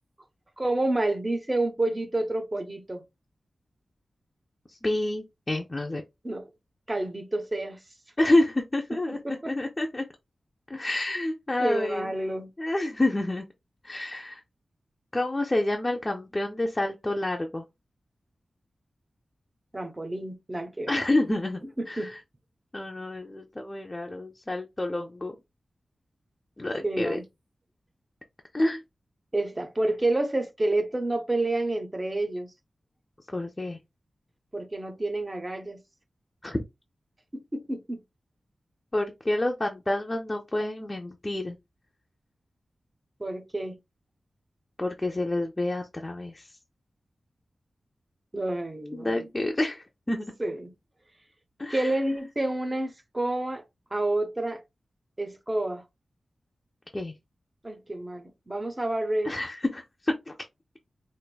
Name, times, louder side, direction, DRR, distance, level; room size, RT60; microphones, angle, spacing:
voice 1, 0.6-3.0 6.2-6.5 6.9-7.8 9.1-9.5 11.6-12.5 19.7-21.0 21.8-22.2 26.8-27.2 29.3-32.5 34.5-35.8 37.3-38.0 43.2-43.8 48.3-49.2 50.4-50.7 51.7-53.6 53.9-54.6 55.2-55.8 57.6-59.3, right 2 dB, 20° right, 0.6 m, -29 dB
voice 2, 4.7-6.0 8.2-10.1 10.7-12.1 12.6-13.5 13.8-14.4 15.1-17.6 20.9-21.6 21.9-22.2 22.7-25.4 26.6-27.2 28.5-28.8 33.3-33.8 36.4-36.6 38.9-41.6 44.8-46.5 48.9-50.3 51.6-52.0 56.9-57.1 59.2-60.3, left 1 dB, 20° left, 0.5 m, -28 dB
4.5 x 2.5 x 2.2 m
wide cardioid pair, 115°, 0 cm